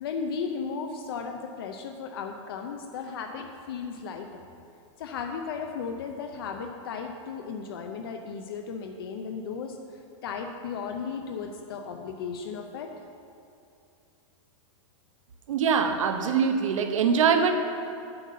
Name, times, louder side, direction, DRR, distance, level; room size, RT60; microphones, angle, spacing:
voice 1, 0.0-4.4 5.0-12.9, left 5 dB, 50° left, 4 dB, 0.6 m, -35 dB
voice 2, 15.5-17.5, right 6 dB, 80° right, 6 dB, 0.9 m, -23 dB
7.8 x 5.4 x 7.5 m, 2.5 s
supercardioid pair, 175°, 16 cm